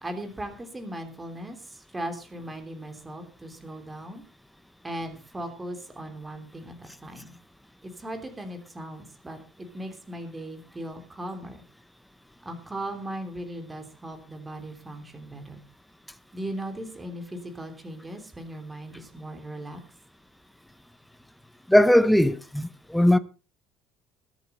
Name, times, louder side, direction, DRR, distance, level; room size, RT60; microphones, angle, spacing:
voice 1, 0.0-4.2 4.8-7.4 7.8-11.6 12.4-15.6 16.3-19.8, right 1 dB, 15° right, 3.1 m, -38 dB
voice 2, 21.7-23.2, left 1 dB, ahead, 0.8 m, -19 dB
21.5 x 8.2 x 4.3 m
cardioid pair, 140°, 0 cm